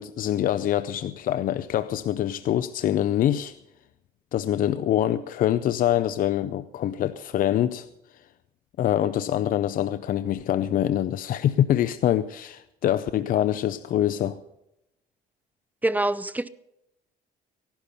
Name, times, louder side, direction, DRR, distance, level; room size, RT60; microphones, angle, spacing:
voice 1, 0.0-3.6 4.3-7.9 8.8-14.4, left 11 dB, 55° left, 0.6 m, -25 dB
voice 2, 15.8-16.5, right 1 dB, 10° right, 0.5 m, -25 dB
16.5 x 12.0 x 5.4 m
cardioid pair, 110°, 17 cm